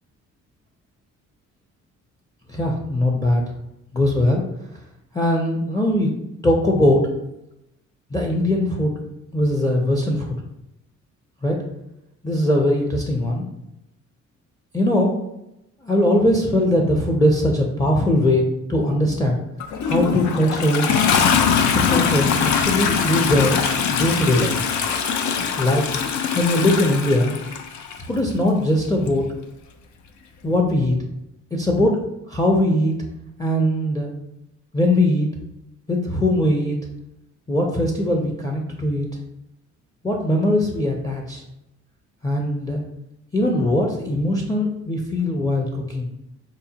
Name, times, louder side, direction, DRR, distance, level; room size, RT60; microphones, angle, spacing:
voice 1, 2.5-3.4 3.9-4.4 5.1-6.1 6.4-7.1 8.1-9.0 9.3-10.4 11.4-11.6 12.2-13.4 14.7-15.2 15.8-19.4 19.9-21.0 21.7-23.6 23.9-24.5 25.6-25.8 26.3-27.4 28.1-29.2 30.4-31.0 31.5-31.9 32.3-33.0 33.4-34.1 34.7-35.3 35.9-36.8 37.5-39.1 40.0-41.4 42.2-42.8 43.3-46.1, left 1 dB, 10° left, 0 dB, 0.5 m, -20 dB
Toilet flush, 19.6-28.0 29.1-29.2, left 6 dB, 70° left, 0.5 m, -22 dB
4.9 x 2.1 x 2.8 m, 0.86 s
cardioid pair, 90°, 30 cm